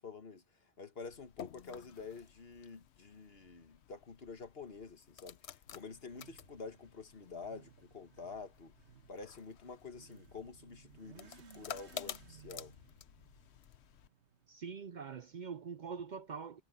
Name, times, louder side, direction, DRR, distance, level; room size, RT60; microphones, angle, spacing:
voice 1, 0.0-8.7 9.1-12.7, left 4 dB, 65° left, 1.8 m, -49 dB
sound 1, 1.0-14.1, left 10 dB, 80° left, 1.0 m, -52 dB
Motorcycle / Accelerating revving vroom, 5.7-14.6, right 7 dB, 85° right, 1.8 m, -61 dB
voice 2, 14.5-16.6, right 6 dB, 55° right, 0.6 m, -44 dB
omnidirectional pair, 1.1 m